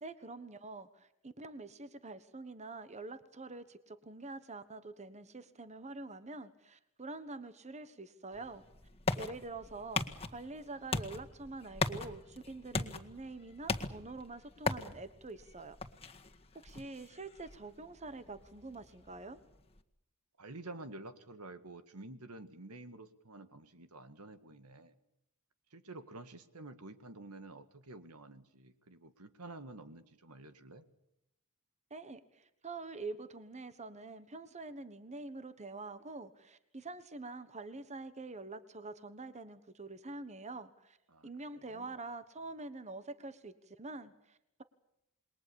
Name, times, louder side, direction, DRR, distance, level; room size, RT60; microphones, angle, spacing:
voice 1, 0.0-8.6 9.2-15.8 16.5-19.4 31.9-41.0 41.2-44.6, right 3 dB, 30° right, 12 dB, 1.3 m, -46 dB
sound 1, 8.3-19.8, left 3 dB, 25° left, 1.8 m, -40 dB
voice 2, 20.4-25.0 25.7-30.8 41.1-41.9, right 2 dB, 80° right, 11 dB, 1.9 m, -50 dB
27.5 x 22.0 x 7.1 m, 0.81 s
head